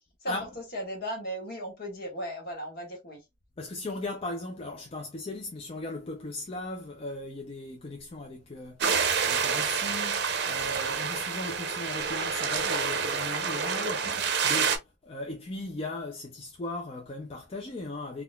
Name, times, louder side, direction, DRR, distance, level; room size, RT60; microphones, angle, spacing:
voice 1, 0.2-3.2, equal, 50° left, 1.4 m, -36 dB
voice 2, 3.6-18.2, left 2 dB, 30° left, 0.4 m, -38 dB
sound 1, 8.8-14.8, right 6 dB, 55° right, 0.6 m, -28 dB
3.8 x 2.3 x 2.2 m
head